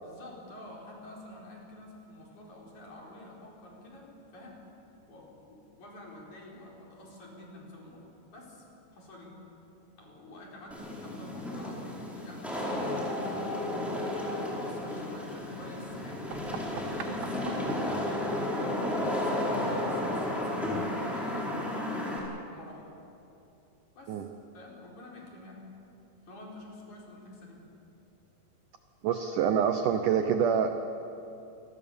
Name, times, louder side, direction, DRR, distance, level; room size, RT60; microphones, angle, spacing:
voice 1, 0.0-4.6 5.1-8.6 8.9-9.3 10.0-13.2 13.9-17.4 17.8-22.1 22.3-22.9 24.0-24.3 24.5-25.6 26.3-27.6, left 1 dB, 45° left, -3 dB, 5.8 m, -48 dB
Wind / Rain, 10.7-22.2, left 1 dB, ahead, 4.2 m, -33 dB
sound 1, 16.3-21.9, right 8 dB, 90° right, 3.4 m, -47 dB
voice 2, 29.0-30.7, right 7 dB, 75° right, 7 dB, 2.0 m, -26 dB
28.0 x 21.5 x 7.0 m, 2.9 s
omnidirectional pair, 4.8 m